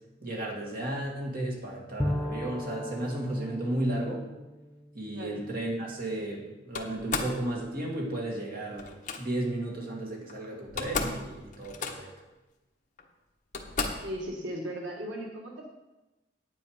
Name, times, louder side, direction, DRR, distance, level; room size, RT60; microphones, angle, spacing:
voice 1, 0.2-4.2 4.9-12.1, right 1 dB, 50° right, -1 dB, 2.6 m, -34 dB
Bowed string instrument, 2.0-5.7, left 1 dB, 15° left, 0.5 m, -36 dB
Slam, 6.7-7.4 8.8-9.2 10.3-10.4 10.6-11.2 11.5-12.2 13.0-13.1 13.5-14.1, left 4 dB, 45° left, 1.2 m, -33 dB
voice 2, 14.0-15.7, equal, 90° right, -1 dB, 1.8 m, -37 dB
9.7 x 9.4 x 5.2 m, 1.0 s
head